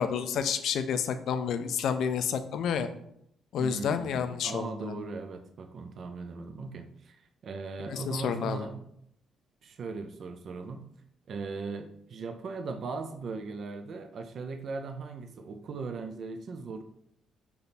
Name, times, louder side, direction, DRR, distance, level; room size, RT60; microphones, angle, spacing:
voice 1, 0.0-2.9 3.5-4.7 7.9-8.7, left 7 dB, 75° left, 10 dB, 0.4 m, -29 dB
voice 2, 3.6-8.8 9.6-10.8 11.3-16.8, right 4 dB, 60° right, 7 dB, 0.4 m, -38 dB
3.4 x 2.8 x 4.0 m, 0.74 s
cardioid pair, 90°, 0 cm